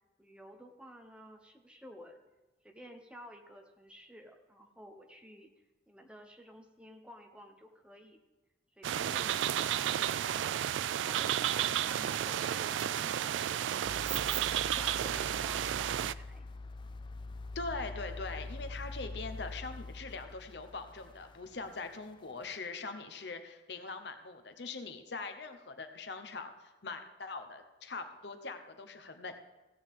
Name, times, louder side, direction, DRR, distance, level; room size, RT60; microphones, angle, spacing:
voice 1, 0.2-2.2 2.6-5.5 5.9-8.2 11.0-14.4 14.7-16.5, equal, 5° right, 3 dB, 1.0 m, -53 dB
sound 1, 8.8-16.1, right 10 dB, 85° right, 0.3 m, -32 dB
sound 2, 13.8-22.1 22.5-22.6, left 2 dB, 25° left, 0.4 m, -45 dB
voice 2, 17.5-29.4, left 3 dB, 65° left, 8 dB, 0.9 m, -42 dB
16.0 x 8.6 x 3.7 m, 1.1 s
head